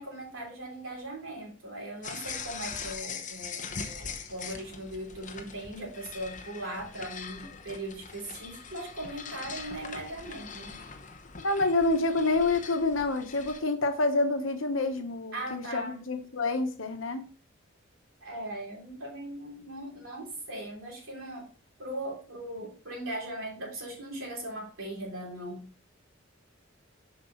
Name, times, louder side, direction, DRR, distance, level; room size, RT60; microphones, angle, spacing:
voice 1, 0.0-10.8 15.3-16.1 18.2-21.5 21.8-25.7, right 1 dB, 85° right, -1 dB, 3.1 m, -39 dB
sound 1, 2.0-13.6, left 5 dB, 40° left, 0.9 m, -42 dB
voice 2, 11.4-17.3, left 2 dB, 80° left, 7 dB, 1.1 m, -28 dB
7.5 x 5.4 x 3.0 m, 0.38 s
head